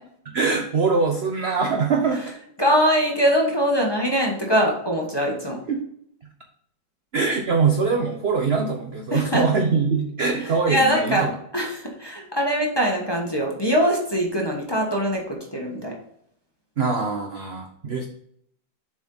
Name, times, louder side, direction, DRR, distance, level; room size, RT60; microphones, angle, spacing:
voice 1, 0.3-2.2 5.7-5.8 7.1-11.3 16.8-18.1, right 5 dB, 65° right, 3 dB, 0.6 m, -23 dB
voice 2, 2.6-5.6 9.1-9.4 10.7-11.3 11.5-15.2 15.5-15.9, equal, 15° left, -1 dB, 1.0 m, -22 dB
7.0 x 5.2 x 3.9 m, 0.69 s
omnidirectional pair, 2.1 m